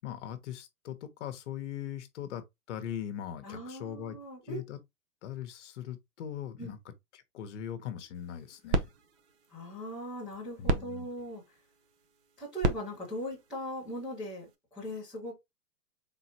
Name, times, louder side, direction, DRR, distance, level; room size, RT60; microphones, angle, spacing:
voice 1, 0.0-4.2 4.4-4.8 5.2-6.8 7.1-8.9 10.6-11.0, left 10 dB, 50° left, 1.1 m, -40 dB
voice 2, 3.4-4.6 6.6-6.7 9.5-11.4 12.4-15.4, equal, ahead, 0.4 m, -39 dB
sound 1, 8.1-14.6, right 3 dB, 45° right, 0.8 m, -36 dB
3.9 x 3.9 x 2.8 m
hypercardioid pair, 130°, 47 cm